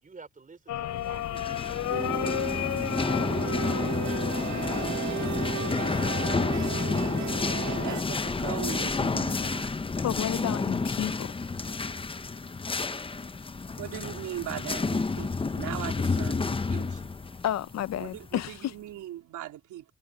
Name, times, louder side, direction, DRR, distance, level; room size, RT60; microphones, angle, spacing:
voice 1, 0.0-1.2 1.5-2.5 3.1-5.2, right 4 dB, 25° right, 3.8 m, -48 dB
sound 1, 0.7-5.7 6.9-7.4, left 13 dB, 75° left, 2.8 m, -34 dB
sound 2, 1.2-18.6, left 4 dB, 20° left, 0.7 m, -30 dB
sound 3, 1.9-8.0, right 10 dB, 65° right, 2.6 m, -35 dB
voice 2, 7.6-9.7 13.8-16.9 18.0-19.8, right 13 dB, 85° right, 3.2 m, -39 dB
voice 3, 10.0-11.5 17.4-18.7, left 11 dB, 60° left, 0.7 m, -31 dB
cardioid pair, 90°, 30 cm